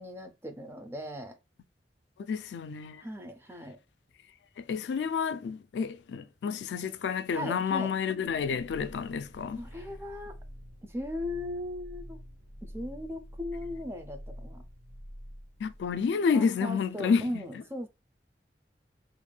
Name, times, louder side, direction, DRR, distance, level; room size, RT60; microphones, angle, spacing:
voice 1, 0.0-1.4 3.0-3.8 7.3-7.9 9.6-10.4 10.9-12.2 12.6-14.6 16.3-17.9, left 1 dB, 15° right, 0.4 m, -38 dB
voice 2, 2.2-3.0 4.6-9.6 15.6-17.4, left 6 dB, 75° left, 0.3 m, -30 dB
sound 1, 8.2-16.1, equal, 70° right, 1.3 m, -47 dB
2.5 x 2.1 x 3.2 m
head